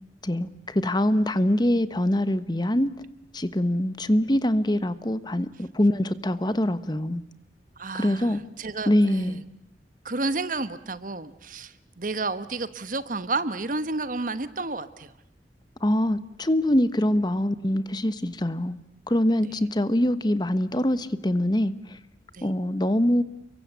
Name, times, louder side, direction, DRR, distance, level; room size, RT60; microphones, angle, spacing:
voice 1, 0.2-2.9 3.3-7.2 7.9-8.4 8.9-9.4 15.8-18.8 19.1-22.0 22.4-23.2, left 1 dB, 25° left, 14 dB, 1.1 m, -24 dB
voice 2, 7.8-9.4 10.0-15.1 22.3-22.5, right 3 dB, 50° right, 13 dB, 1.2 m, -31 dB
30.0 x 23.0 x 8.3 m, 0.78 s
head